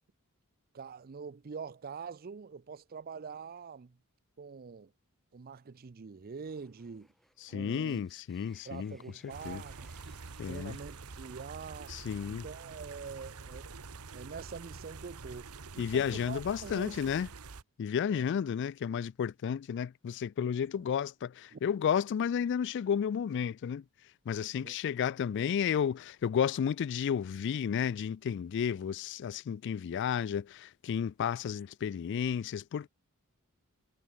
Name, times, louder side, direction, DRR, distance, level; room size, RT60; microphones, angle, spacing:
voice 1, 0.7-4.0 4.4-4.9 5.3-7.1 7.5-8.0 8.6-10.2 10.5-12.0 12.3-13.8 14.1-17.1 18.1-18.3 20.4-20.8 21.5-21.6 24.6-24.8, right 5 dB, 45° right, 0.5 m, -45 dB
sound 1, 6.4-12.6, equal, ahead, 4.0 m, -67 dB
voice 2, 7.4-9.0 9.2-9.6 10.4-10.8 11.9-12.5 15.8-17.3 17.8-23.8 24.3-32.9, left 8 dB, 55° left, 0.3 m, -32 dB
sound 2, 9.3-17.6, right 4 dB, 90° right, 1.2 m, -47 dB
head